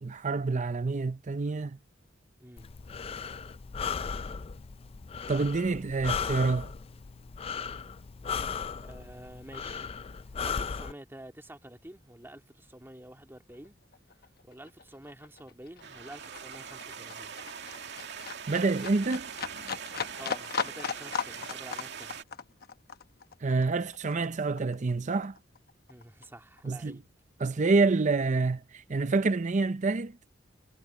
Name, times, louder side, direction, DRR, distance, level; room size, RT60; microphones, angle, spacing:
voice 1, 0.0-1.8 5.3-6.7 18.5-19.3 23.4-25.4 26.6-27.0 27.4-30.2, right 3 dB, 40° right, 0.6 m, -27 dB
Breathing, 2.6-10.9, left 6 dB, 30° left, 0.4 m, -36 dB
voice 2, 8.8-9.9 10.4-13.8 14.4-17.3 20.2-22.2 25.9-27.0, right 1 dB, 10° right, 2.2 m, -49 dB
Livestock farm animals working animals, 13.5-13.7 13.9-24.9 25.2-26.3 26.6-26.7, left 6 dB, 55° left, 1.0 m, -38 dB
sound 1, 15.8-22.2, right 7 dB, 65° right, 2.4 m, -42 dB
head